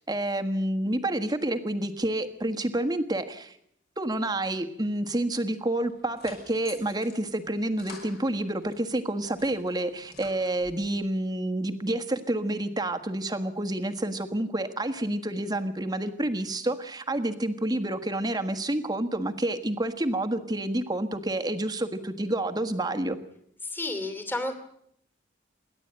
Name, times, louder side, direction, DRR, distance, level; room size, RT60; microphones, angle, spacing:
voice 1, 0.1-3.6 4.0-23.2, right 1 dB, 20° right, 8 dB, 1.4 m, -29 dB
sound 1, 5.8-8.8 9.2-10.9, left 4 dB, 55° left, 5.8 m, -49 dB
voice 2, 23.6-24.5, left 2 dB, 10° left, 8 dB, 2.6 m, -31 dB
27.5 x 11.5 x 8.8 m, 0.72 s
head